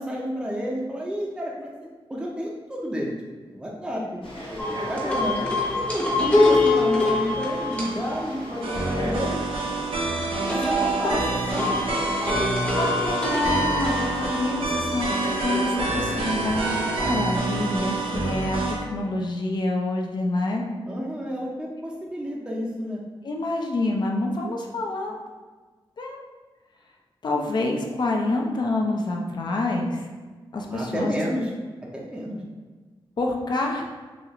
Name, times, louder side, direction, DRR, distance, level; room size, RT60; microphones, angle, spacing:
voice 1, 0.0-1.7 2.1-3.1 3.5-4.0 4.7-5.4 5.7-6.1 6.5-9.4 10.5-11.2 11.5-12.5 20.9-23.0 30.7-31.5 31.9-32.4, equal, 10° right, -3 dB, 0.6 m, -30 dB
Frog, 4.2-18.2, equal, 70° left, 1.1 m, -38 dB
sound 1, 4.6-9.2 10.5-14.6, left 2 dB, 15° left, 0.9 m, -25 dB
voice 2, 6.2-6.6 11.0-11.4 12.7-15.2 15.4-18.6 18.9-20.6 23.2-25.2 26.0-26.2 27.2-30.1 30.5-31.1 33.2-33.9, left 2 dB, 50° left, 1 dB, 0.6 m, -27 dB
sound 2, 8.6-18.8, right 3 dB, 80° right, 0.8 m, -27 dB
6.1 x 2.5 x 3.0 m, 1.4 s
wide cardioid pair, 135°, 9 cm